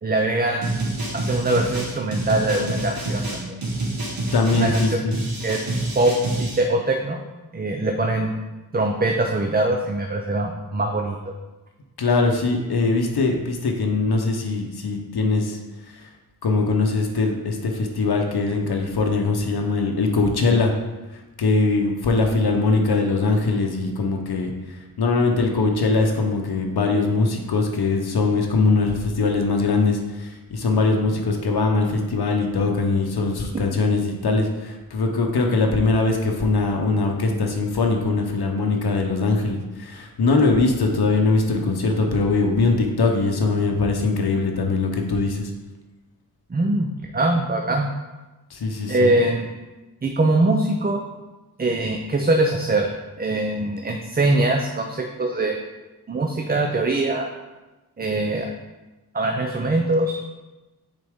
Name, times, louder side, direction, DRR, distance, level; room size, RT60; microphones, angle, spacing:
voice 1, 0.0-0.9 1.1-3.6 4.6-5.0 5.4-5.6 5.9-7.2 7.5-8.3 8.7-11.2 46.5-47.9 48.9-49.5 50.0-51.0 51.6-52.9 53.2-55.6 56.1-57.3 58.0-58.5 59.1-60.2, right 2 dB, 25° right, 3 dB, 0.5 m, -22 dB
sound 1, 0.6-6.6, right 2 dB, 65° right, 1.4 m, -27 dB
voice 2, 4.3-5.1 12.0-15.6 15.9-16.1 16.4-20.7 21.1-45.5 48.5-49.1, left 3 dB, 90° left, 2 dB, 0.8 m, -21 dB
6.5 x 4.1 x 3.5 m, 1.1 s
wide cardioid pair, 90°, 37 cm